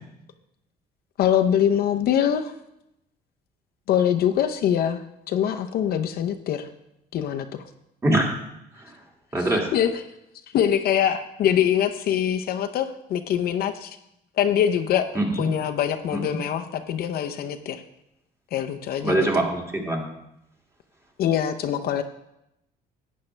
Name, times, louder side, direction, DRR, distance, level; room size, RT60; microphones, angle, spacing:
voice 1, 1.2-2.5 3.9-5.0 5.3-6.7 7.1-7.5 9.7-9.9 10.5-14.0 14.4-15.1 15.4-17.8 18.5-19.4 21.2-22.0, left 9 dB, 65° left, 6 dB, 0.7 m, -23 dB
voice 2, 9.3-9.7 15.1-15.5 16.1-16.2 19.0-20.1, right 1 dB, 15° right, 0 dB, 2.2 m, -23 dB
12.0 x 8.6 x 3.3 m, 0.83 s
cardioid pair, 110°, 17 cm